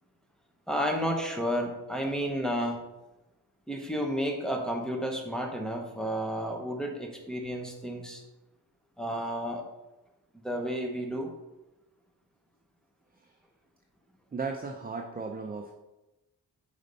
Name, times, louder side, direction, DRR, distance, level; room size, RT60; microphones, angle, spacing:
voice 1, 0.7-2.8 3.7-8.2 9.0-9.6 10.4-11.3, equal, ahead, 1 dB, 1.0 m, -31 dB
voice 2, 14.3-15.7, right 4 dB, 20° right, 3 dB, 0.5 m, -36 dB
5.2 x 5.1 x 4.0 m, 1.0 s
cardioid pair, 85°, 41 cm